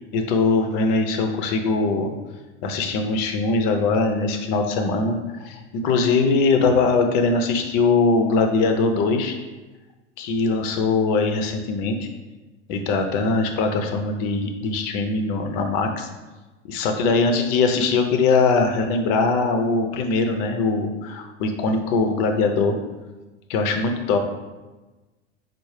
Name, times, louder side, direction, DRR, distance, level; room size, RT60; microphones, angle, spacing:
voice 1, 0.1-2.1 2.6-9.3 10.2-12.1 12.7-16.1 16.7-22.8 23.5-24.2, left 3 dB, 50° left, 5 dB, 0.6 m, -21 dB
4.5 x 2.0 x 3.2 m, 1.2 s
hypercardioid pair, 95°, 36 cm